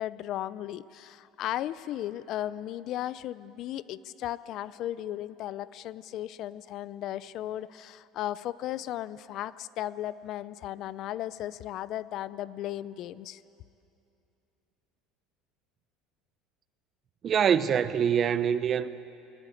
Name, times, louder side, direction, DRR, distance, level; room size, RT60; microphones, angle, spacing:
voice 1, 0.0-13.4, left 13 dB, 55° left, 0.6 m, -36 dB
voice 2, 17.2-18.9, right 8 dB, 35° right, 0.9 m, -24 dB
21.0 x 20.5 x 8.5 m
supercardioid pair, 115°, 0 cm